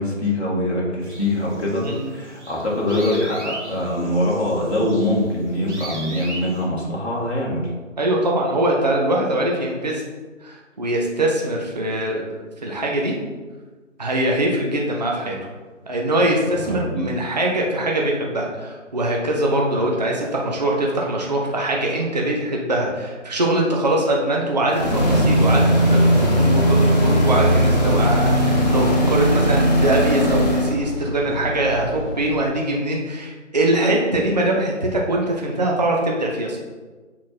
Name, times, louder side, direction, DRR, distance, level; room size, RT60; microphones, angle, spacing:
voice 1, 0.0-7.6 16.6-17.1, left 1 dB, 55° left, -4 dB, 1.9 m, -23 dB
sound 1, 1.0-6.6, right 2 dB, 60° right, 1.9 m, -38 dB
voice 2, 1.8-2.1 8.0-10.0 10.4-12.3 12.6-13.2 14.0-15.4 15.9-36.6, right 1 dB, 35° right, -1 dB, 0.7 m, -22 dB
sound 2, 24.7-30.8, equal, 35° left, 1.1 m, -18 dB
sound 3, 27.2-32.4, equal, 15° left, 1.3 m, -31 dB
6.4 x 4.0 x 4.2 m, 1.3 s
figure-of-eight pair, 165°, 39 cm